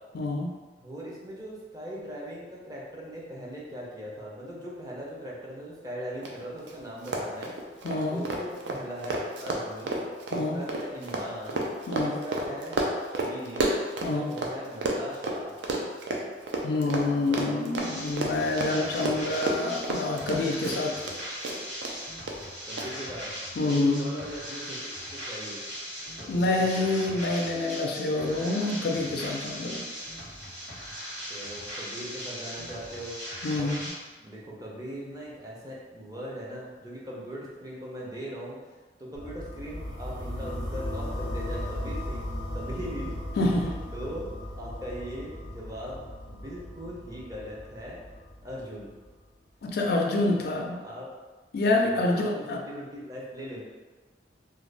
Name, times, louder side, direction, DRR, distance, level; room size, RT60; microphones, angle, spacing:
voice 1, 0.1-0.5 7.8-8.2 10.3-10.6 11.9-12.2 14.0-14.3 16.6-20.9 23.6-24.2 26.3-29.8 33.4-33.9 43.4-43.8 49.6-50.8 51.5-52.6, left 2 dB, 60° left, 1 dB, 0.4 m, -27 dB
voice 2, 0.8-7.6 8.1-10.0 10.3-11.6 12.0-12.8 13.1-13.7 14.1-15.5 17.3-17.6 22.7-23.3 23.6-24.8 25.1-25.6 26.2-27.2 31.1-33.2 33.5-33.7 34.2-38.6 39.0-43.4 43.9-44.3 44.5-48.0 48.4-48.9 50.8-51.1 51.8-53.6, equal, 20° right, -5 dB, 0.5 m, -40 dB
Run, 6.2-6.3 6.6-6.7 7.0-14.5 14.8-21.2 21.4-21.9 22.3-22.4 22.8-22.9, right 2 dB, 70° right, 0.4 m, -31 dB
sound 1, 17.8-33.9, equal, 85° right, 1.4 m, -39 dB
sound 2, 39.1-49.1, left 1 dB, 50° right, 1.2 m, -37 dB
2.5 x 2.2 x 3.2 m, 1.3 s
head